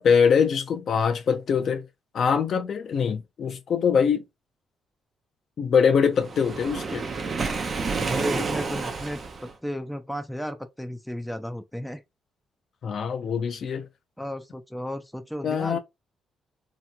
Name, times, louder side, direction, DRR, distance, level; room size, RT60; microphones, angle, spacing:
voice 1, 0.0-1.8 2.1-4.2 5.6-7.0 12.8-13.9 15.4-15.8, left 6 dB, 55° left, 0.5 m, -23 dB
Waves surf, 6.2-9.5, right 4 dB, 40° right, 0.6 m, -29 dB
voice 2, 8.0-12.0 14.2-15.8, equal, 5° left, 0.4 m, -34 dB
2.9 x 2.9 x 2.2 m
cardioid pair, 90°, 0 cm